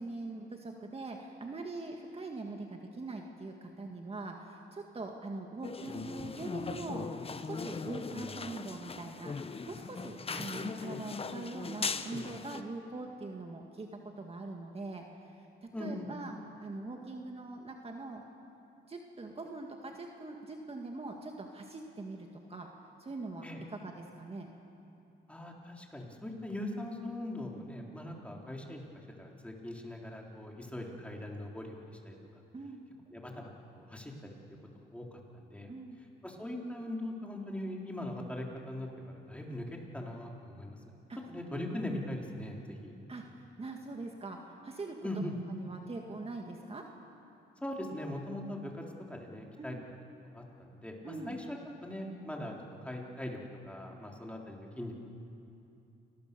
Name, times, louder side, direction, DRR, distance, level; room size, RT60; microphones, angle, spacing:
voice 1, 0.0-13.9 14.2-15.5 15.8-16.3 16.6-18.2 18.9-22.7 23.0-23.5 23.7-24.5 32.5-32.8 35.7-36.0 41.1-41.2 41.5-41.6 43.1-45.0 45.5-46.9 49.6-49.8 51.0-51.4, right 3 dB, 30° right, 2 dB, 2.0 m, -42 dB
sound 1, 5.6-12.6, left 4 dB, 30° left, 1.0 m, -39 dB
voice 2, 15.7-16.1 23.4-23.6 25.3-28.8 29.2-32.2 33.1-34.3 34.7-35.7 36.2-40.8 41.3-42.9 45.0-45.3 47.6-49.8 50.3-52.6 52.8-53.4 53.6-54.9, left 1 dB, 5° left, 0 dB, 3.6 m, -41 dB
28.5 x 19.0 x 6.9 m, 2.8 s
cardioid pair, 90°, 20 cm